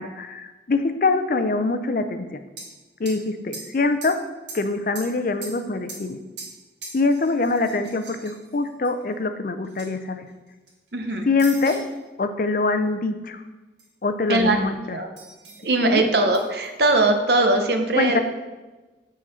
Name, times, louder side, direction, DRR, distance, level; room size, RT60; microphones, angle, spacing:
voice 1, 0.0-2.3 3.0-4.2 4.5-6.2 6.9-10.2 11.3-11.8 12.2-13.4 14.0-14.7 15.8-16.0 18.0-18.2, left 3 dB, 50° left, 9 dB, 0.5 m, -24 dB
sound 1, 2.6-2.8 3.1-3.2 3.5-4.2 4.5-5.2 5.4-6.6 6.8-9.0 9.6-9.9 10.3-10.9 11.4-11.9 13.8-13.9 15.2-15.7 16.3-16.7, right 3 dB, 80° right, 1.8 m, -40 dB
voice 2, 10.9-11.3 14.3-14.6 14.9-15.1 15.6-18.2, right 2 dB, 65° right, 5 dB, 0.8 m, -20 dB
7.7 x 3.8 x 5.5 m, 1.2 s
head